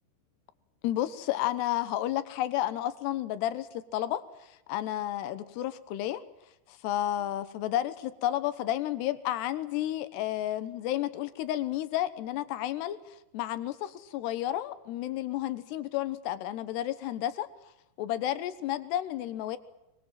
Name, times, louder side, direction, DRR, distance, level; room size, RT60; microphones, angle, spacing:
voice 1, 0.8-6.2 6.7-17.5 18.0-19.6, left 13 dB, 75° left, 12 dB, 3.1 m, -31 dB
24.0 x 22.0 x 7.6 m, 0.91 s
omnidirectional pair, 5.1 m